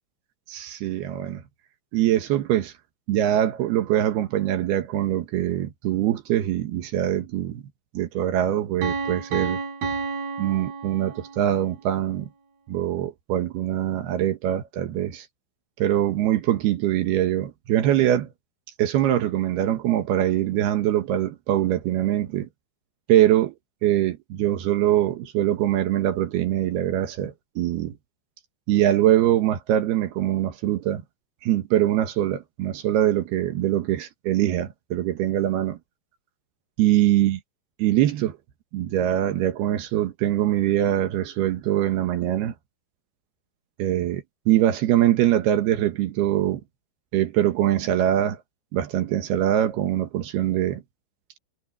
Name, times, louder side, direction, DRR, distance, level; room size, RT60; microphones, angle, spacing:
voice 1, 0.5-1.4 1.9-2.7 3.1-7.6 7.9-9.6 10.4-12.3 12.7-15.3 15.8-18.3 18.8-22.5 23.1-23.5 23.8-28.0 28.7-31.0 31.4-35.8 36.8-37.4 37.8-38.4 38.7-42.5 43.8-46.6 47.1-48.4 48.7-50.8, right 12 dB, 70° right, 2.7 m, -23 dB
Piano, 8.8-11.6, right 4 dB, 50° right, 5.9 m, -30 dB
omnidirectional pair, 5.9 m